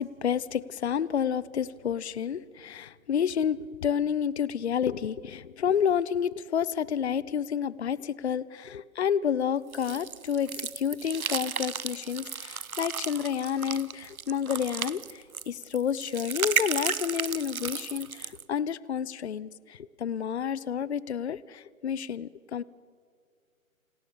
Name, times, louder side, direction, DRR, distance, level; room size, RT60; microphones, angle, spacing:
voice 1, 0.0-22.6, left 8 dB, 50° left, 21 dB, 0.7 m, -30 dB
sound 1, 9.7-18.4, right 6 dB, 85° right, 1.3 m, -34 dB
29.0 x 20.0 x 7.0 m, 2.1 s
hypercardioid pair, 160°, 42 cm